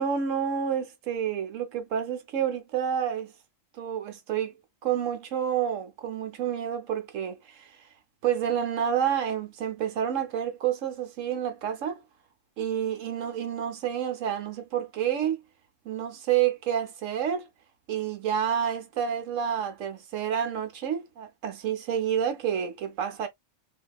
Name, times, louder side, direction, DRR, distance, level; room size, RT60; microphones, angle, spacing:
voice 1, 0.0-3.3 3.7-4.5 4.8-7.9 8.2-12.0 12.6-15.4 15.8-17.5 17.9-23.3, right 9 dB, 75° right, 1.1 m, -29 dB
2.8 x 2.7 x 2.3 m
omnidirectional pair, 1.3 m